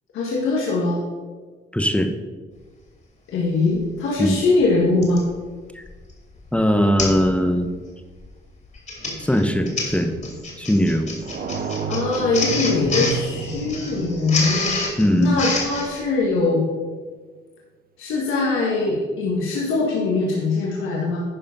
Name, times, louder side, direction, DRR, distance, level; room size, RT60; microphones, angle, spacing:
voice 1, 0.1-1.0 3.3-5.2 11.9-14.7 15.2-16.6 18.0-21.2, left 3 dB, 85° left, -3 dB, 1.8 m, -22 dB
voice 2, 1.7-2.1 4.2-4.4 5.7-5.8 6.5-7.7 9.2-10.1 10.6-11.1 15.0-15.4, equal, 5° left, 6 dB, 0.9 m, -20 dB
Printer, 3.8-3.9 5.0-5.3 5.9-6.1 6.4-6.5 7.0-7.3 7.6-7.9 8.6-15.9, left 2 dB, 40° left, 2.8 m, -27 dB
sound 1, 11.2-15.9, right 6 dB, 50° right, 1.0 m, -33 dB
11.0 x 4.8 x 5.4 m, 1.4 s
cardioid pair, 90°, 20 cm